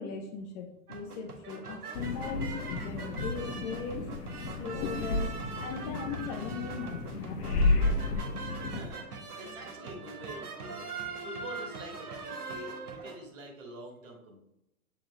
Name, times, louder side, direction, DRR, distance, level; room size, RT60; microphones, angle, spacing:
voice 1, 0.0-4.1 4.6-7.8, left 6 dB, 30° left, 5 dB, 0.6 m, -39 dB
sound 1, 0.9-13.2, right 4 dB, 85° right, 1.2 m, -42 dB
sound 2, 1.9-8.9, left 2 dB, 85° left, 0.9 m, -32 dB
voice 2, 8.5-14.4, right 1 dB, 60° right, 0 dB, 2.2 m, -46 dB
7.4 x 4.3 x 3.2 m, 0.87 s
hypercardioid pair, 120°, 45 cm